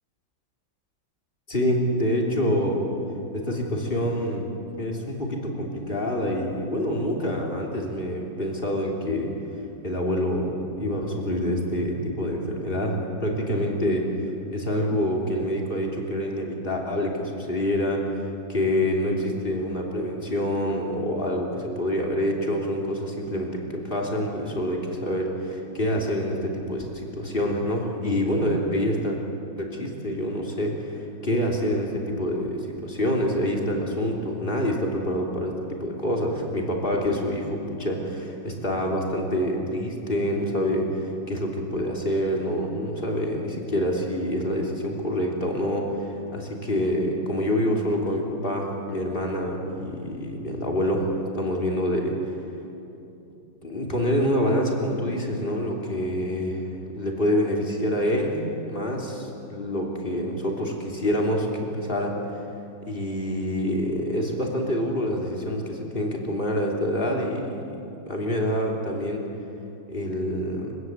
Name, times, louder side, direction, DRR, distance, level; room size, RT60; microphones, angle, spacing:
voice 1, 1.5-2.9 3.3-4.5 4.8-9.3 9.8-18.2 18.5-29.2 29.6-52.3 53.6-62.4 62.8-69.2 69.9-70.8, equal, 25° left, -1 dB, 3.5 m, -26 dB
28.5 x 17.0 x 8.2 m, 2.8 s
omnidirectional pair, 2.2 m